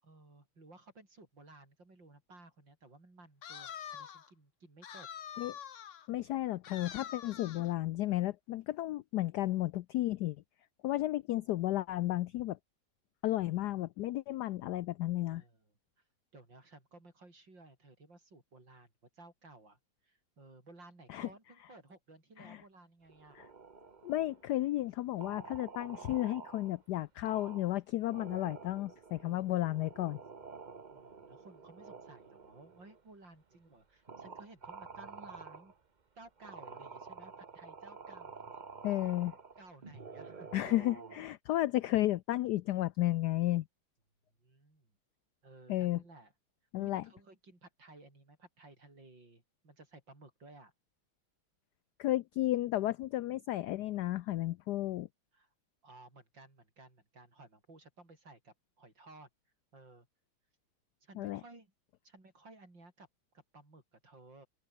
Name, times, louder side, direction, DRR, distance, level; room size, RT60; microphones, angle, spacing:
voice 1, 0.0-5.1 15.3-15.7 16.3-23.4 29.2-29.7 30.9-35.7 36.2-38.5 39.6-40.5 44.4-44.9 45.4-46.3 46.8-50.7 55.3-55.5 55.8-59.3 59.7-60.1 61.0-61.7 62.0-63.1 63.3-64.5, right 2 dB, 60° right, 7.8 m, -57 dB
sound 1, 3.4-4.3 4.8-6.1 6.6-7.7, left 9 dB, 50° left, 0.9 m, -46 dB
voice 2, 6.1-10.4 10.8-12.6 13.2-15.4 21.1-21.3 22.4-22.6 24.0-30.2 38.8-39.3 40.5-43.6 45.7-46.0 46.7-47.0 52.0-55.1 61.2-61.4, left 15 dB, 80° left, 0.9 m, -33 dB
sound 2, 23.1-24.6 25.2-26.8 27.2-27.7 28.0-33.0 33.5-33.6 34.1-35.7 36.4-41.3, right 4 dB, 30° right, 0.9 m, -49 dB
open air
omnidirectional pair, 2.3 m